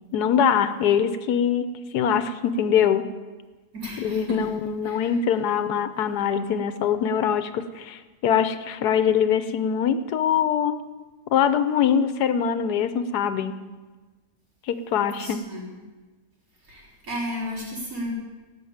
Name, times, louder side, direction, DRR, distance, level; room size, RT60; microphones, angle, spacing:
voice 1, 0.1-1.7 1.9-3.1 4.0-10.8 11.3-13.6 14.7-15.5, left 8 dB, 80° left, 11 dB, 1.3 m, -23 dB
voice 2, 3.7-4.5 4.8-5.4 15.2-15.7 16.6-18.1, equal, 60° right, -5 dB, 4.4 m, -34 dB
16.5 x 6.5 x 8.7 m, 1.3 s
omnidirectional pair, 1.7 m